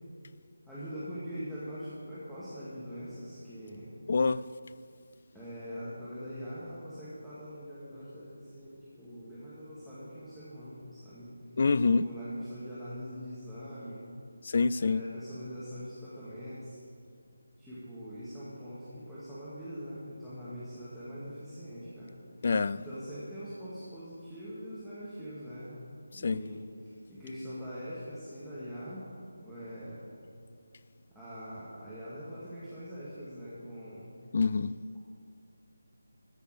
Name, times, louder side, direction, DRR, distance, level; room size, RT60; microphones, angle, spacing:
voice 1, 0.7-3.9 5.3-11.3 11.8-14.1 14.7-16.8 17.6-22.2 22.8-25.8 26.1-30.0 31.1-34.1, equal, ahead, -14 dB, 1.9 m, -43 dB
voice 2, 4.1-4.5 11.6-12.1 14.4-15.0 22.4-22.8 26.1-26.4 34.3-34.8, left 4 dB, 45° left, 17 dB, 0.3 m, -26 dB
14.0 x 6.6 x 6.4 m, 2.4 s
figure-of-eight pair, 160°, 0 cm